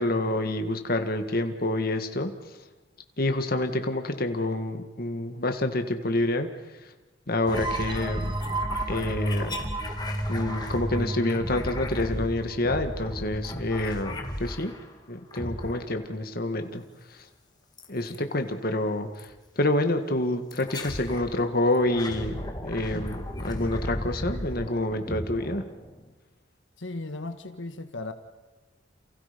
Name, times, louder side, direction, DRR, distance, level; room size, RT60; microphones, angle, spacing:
voice 1, 0.0-2.3 3.2-6.5 7.3-8.4 8.9-9.5 10.3-14.7 15.1-16.8 17.9-19.3 19.6-25.6, left 1 dB, 50° left, 6 dB, 1.9 m, -27 dB
sound 1, 7.5-14.9 15.3-16.1 17.8-18.2 19.2-19.4 20.5-21.3 21.7-26.1, left 1 dB, 20° left, 2.5 m, -35 dB
sound 2, 7.5-13.0, right 2 dB, 25° right, 1.6 m, -32 dB
voice 2, 26.8-28.1, left 2 dB, 80° left, 7 dB, 1.5 m, -36 dB
30.0 x 29.0 x 5.3 m, 1.2 s
head